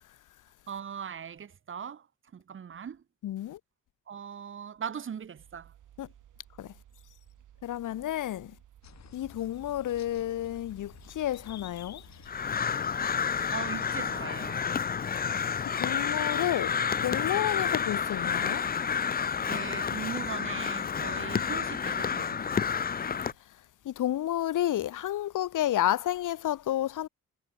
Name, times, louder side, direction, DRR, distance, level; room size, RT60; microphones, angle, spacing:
voice 1, 0.7-2.1 2.3-3.0 4.1-5.7 13.5-14.7 16.4-16.7 19.4-22.7, right 7 dB, 40° right, 3.0 m, -40 dB
voice 2, 3.2-3.6 6.0-6.1 6.6-6.7 7.6-8.5 9.1-12.0 15.8-18.6 23.9-27.1, left 12 dB, 90° left, 1.8 m, -31 dB
sound 1, 5.4-23.4, right 11 dB, 85° right, 6.8 m, -58 dB
sound 2, 8.8-14.1, left 10 dB, 65° left, 7.2 m, -51 dB
Crow, 12.3-23.3, left 7 dB, 30° left, 0.9 m, -30 dB
wide cardioid pair, 175°, 30 cm